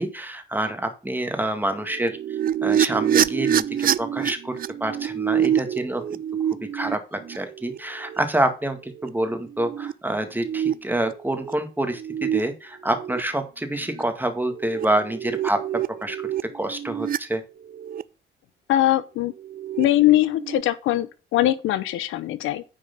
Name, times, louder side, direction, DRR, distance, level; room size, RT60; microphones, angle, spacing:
voice 1, 0.0-2.2 2.6-4.5 4.8-6.2 6.5-15.6 16.0-16.3 16.5-17.4, right 1 dB, 10° right, 1.9 m, -27 dB
sound 1, 1.8-8.2 8.9-9.1 9.5-9.9 10.4-11.5 11.9-12.4 12.9-13.2 13.9-14.0 14.4-17.2 17.6-18.0 19.4-19.8 20.2-20.6, right 10 dB, 45° right, 0.5 m, -26 dB
voice 2, 18.7-19.3 19.8-22.6, left 14 dB, 85° left, 0.7 m, -21 dB
9.7 x 4.9 x 5.4 m
cardioid pair, 90°, 20 cm